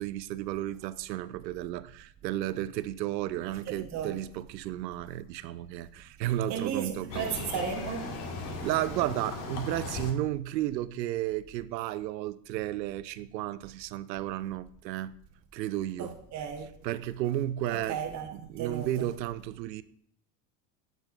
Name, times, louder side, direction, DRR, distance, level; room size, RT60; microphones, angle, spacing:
voice 1, 0.0-7.3 8.6-15.2 15.5-16.1 16.8-18.0 18.5-19.8, right 13 dB, 80° right, 0.6 m, -33 dB
voice 2, 3.7-4.1 6.5-8.1 16.0-16.7 17.7-19.1, right 7 dB, 35° right, 1.1 m, -35 dB
sound 1, 7.1-10.1, left 3 dB, 55° left, 1.7 m, -37 dB
9.0 x 7.7 x 2.4 m
hypercardioid pair, 90°, 50 cm